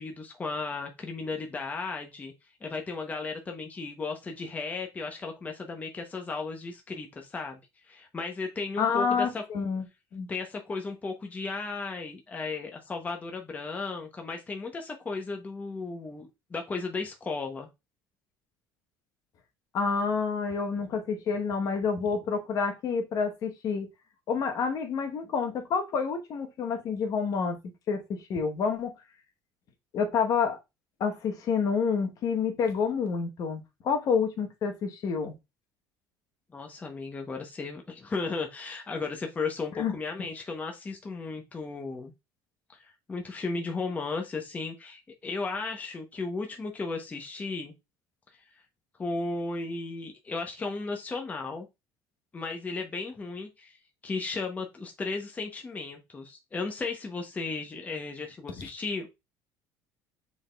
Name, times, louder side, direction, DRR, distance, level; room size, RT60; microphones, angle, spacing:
voice 1, 0.0-2.3 2.6-9.4 10.3-17.7 36.5-42.1 42.7-47.7 48.3-48.4 49.0-51.7 52.3-59.1, left 3 dB, 20° left, 0.8 m, -35 dB
voice 2, 8.8-9.8 10.1-10.3 19.7-23.9 24.3-27.6 27.9-28.9 29.9-30.6 31.0-35.3 39.8-39.9 58.6-58.7, left 5 dB, 55° left, 1.0 m, -28 dB
6.2 x 3.6 x 2.3 m
cardioid pair, 110°, 7 cm